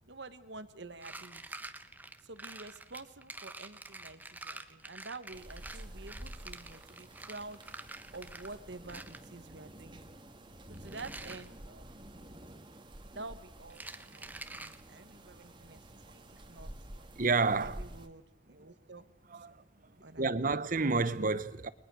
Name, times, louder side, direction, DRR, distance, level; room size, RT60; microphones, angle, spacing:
voice 1, 0.0-1.4 2.2-7.6 8.1-10.0 10.7-12.1 13.1-15.8 16.1-16.7 17.6-19.1 19.3-19.6 20.0-20.5, right 3 dB, 65° right, 1.5 m, -49 dB
sound 1, 0.9-8.6 8.9-9.2 10.7-11.5 13.7-14.8, right 2 dB, 10° right, 1.1 m, -47 dB
sound 2, 5.3-18.1, right 1 dB, 25° right, 1.9 m, -50 dB
voice 2, 17.2-17.9 19.3-19.6 20.2-21.7, right 3 dB, 45° right, 1.1 m, -30 dB
30.0 x 22.0 x 6.4 m
head